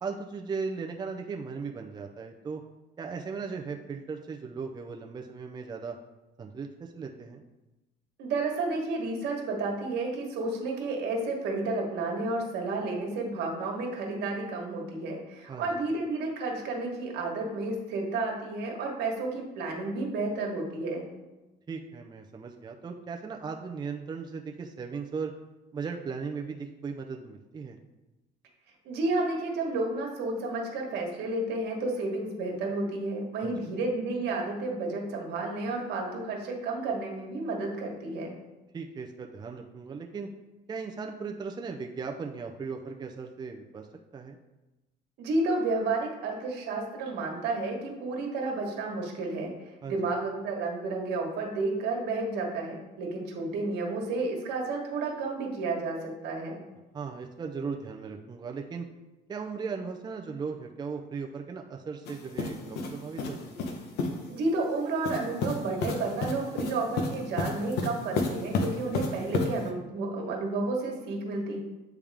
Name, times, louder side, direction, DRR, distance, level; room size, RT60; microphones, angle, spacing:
voice 1, 0.0-2.6 3.0-6.0 6.4-7.4 15.5-15.7 21.7-25.3 25.7-27.8 33.4-33.6 38.7-40.3 40.7-43.9 44.1-44.4 49.8-50.0 56.9-58.9 59.3-63.6, right 5 dB, 25° right, 3 dB, 0.5 m, -37 dB
voice 2, 8.2-21.1 28.8-38.4 45.2-56.6 64.3-71.6, right 3 dB, 80° right, 0 dB, 1.5 m, -31 dB
sound 1, 62.1-64.2 65.0-69.7, left 3 dB, 80° left, 0.9 m, -32 dB
8.6 x 3.5 x 3.4 m, 1.1 s
cardioid pair, 110°, 17 cm